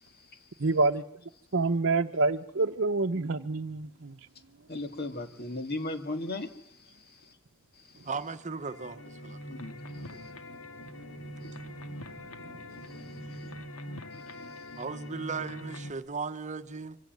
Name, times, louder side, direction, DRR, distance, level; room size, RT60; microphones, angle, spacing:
voice 1, 0.6-1.0 1.5-4.2 11.4-11.7 12.6-12.7, right 3 dB, 55° right, 0.9 m, -27 dB
voice 2, 4.7-7.3 7.8-7.9 9.4-10.3 11.4-11.6 12.9-13.1 13.4-13.5 14.1-14.2 14.5-14.6, left 2 dB, 50° left, 2.1 m, -38 dB
voice 3, 8.1-9.4 10.1-10.3 14.8-17.0, right 4 dB, 35° right, 1.1 m, -37 dB
sound 1, 8.2-15.9, left 1 dB, 90° left, 2.2 m, -43 dB
25.5 x 17.0 x 9.3 m
head